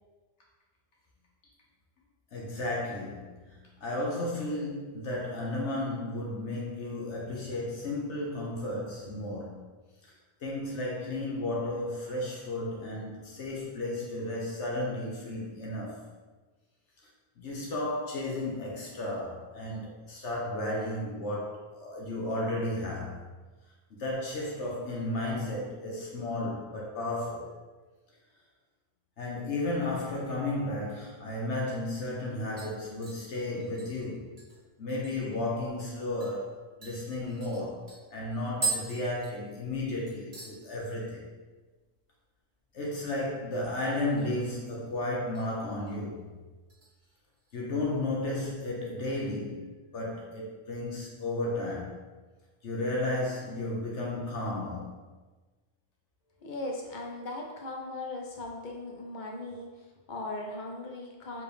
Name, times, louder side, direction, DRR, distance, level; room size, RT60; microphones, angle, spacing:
voice 1, 2.3-9.6 10.4-16.1 17.4-23.2 23.9-27.5 29.2-34.3 34.8-36.5 36.8-41.3 42.7-46.3 47.5-51.9 52.6-55.0, left 1 dB, 70° left, -3 dB, 1.1 m, -33 dB
sound 1, 32.6-35.4 35.7-35.8 36.2-36.4 36.8-39.8 40.1-40.6 40.9-41.3 41.6-41.7 43.8-44.4 44.7-45.5 45.9-46.1 46.7-47.6 48.0-48.1, right 4 dB, 40° right, 1.5 m, -40 dB
voice 2, 56.4-61.4, left 2 dB, 45° left, 0 dB, 0.7 m, -38 dB
4.8 x 3.4 x 3.2 m, 1.3 s
omnidirectional pair, 1.3 m